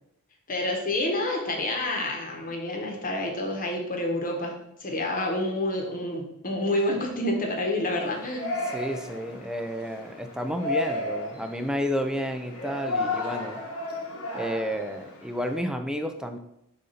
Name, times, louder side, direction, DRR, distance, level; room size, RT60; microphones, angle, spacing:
voice 1, 0.5-4.5 4.8-8.5, left 1 dB, 40° left, 1 dB, 1.1 m, -28 dB
Yell, 7.9-15.6, left 2 dB, 70° left, 1.3 m, -34 dB
voice 2, 8.7-13.6 14.3-16.4, equal, 5° right, 6 dB, 0.4 m, -31 dB
6.5 x 2.7 x 5.6 m, 0.81 s
head